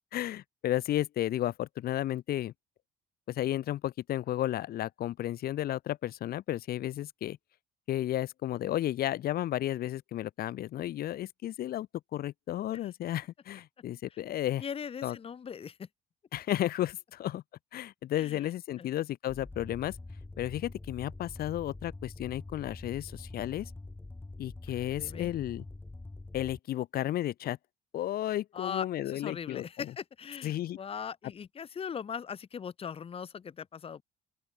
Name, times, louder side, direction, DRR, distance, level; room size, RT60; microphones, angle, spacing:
voice 1, 0.1-2.5 3.3-7.4 7.9-14.6 15.0-15.2 16.3-17.4 17.7-20.0 20.4-23.7 24.4-25.6 26.3-27.6 27.9-29.6 30.4-30.8, left 13 dB, 65° left, 1.3 m, -33 dB
voice 2, 14.6-15.9 18.1-18.4 18.8-18.9 24.7-25.3 28.5-34.0, left 7 dB, 35° left, 1.3 m, -40 dB
sound 1, 19.3-26.6, left 2 dB, 15° left, 2.4 m, -45 dB
open air
cardioid pair, 110°, 17 cm